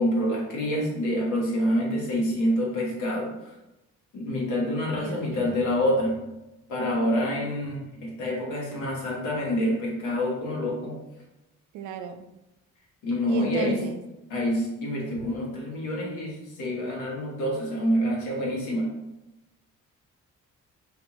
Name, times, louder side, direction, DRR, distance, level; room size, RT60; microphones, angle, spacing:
voice 1, 0.0-3.5 4.1-6.2 6.7-10.9 13.0-13.8 14.3-18.9, equal, 90° left, -3 dB, 1.2 m, -27 dB
voice 2, 5.0-5.6 11.7-12.3 13.3-14.0, right 6 dB, 75° right, 8 dB, 0.5 m, -34 dB
4.2 x 2.6 x 2.9 m, 0.97 s
cardioid pair, 90°, 30 cm